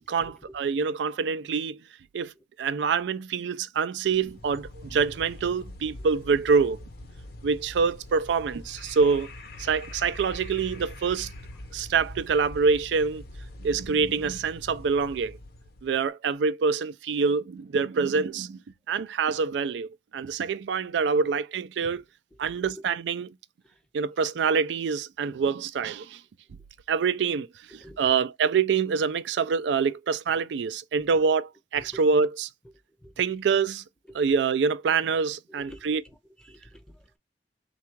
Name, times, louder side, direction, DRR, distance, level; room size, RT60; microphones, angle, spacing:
voice 1, 0.1-1.8 2.1-2.3 2.6-6.8 7.4-9.3 9.6-11.3 11.7-13.2 13.6-15.4 15.8-18.6 18.9-22.0 22.4-23.3 23.9-26.2 26.9-27.5 27.7-32.5 33.2-33.8 34.1-36.0, right 5 dB, 85° right, 0.4 m, -26 dB
sound 1, 4.1-16.0, left 1 dB, 55° left, 0.6 m, -43 dB
voice 2, 22.4-22.8 26.5-26.6 27.7-28.0 31.8-32.0 33.0-33.1 35.5-37.2, equal, 5° left, 0.5 m, -48 dB
3.5 x 2.3 x 4.4 m
head